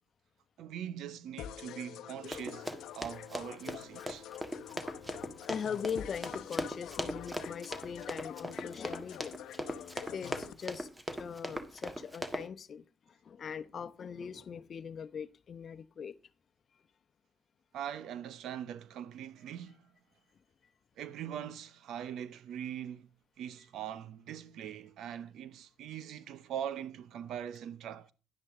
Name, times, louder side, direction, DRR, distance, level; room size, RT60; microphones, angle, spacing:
voice 1, 0.6-4.3 17.7-19.8 21.0-23.1 23.4-28.1, right 9 dB, 80° right, 0.9 m, -42 dB
sound 1, 1.4-10.5, left 11 dB, 85° left, 0.8 m, -47 dB
Run, 2.3-12.5, equal, 15° right, 1.6 m, -39 dB
voice 2, 4.9-9.5 10.1-16.1, left 7 dB, 50° left, 0.9 m, -41 dB
11.0 x 10.0 x 3.7 m
cardioid pair, 90°, 0 cm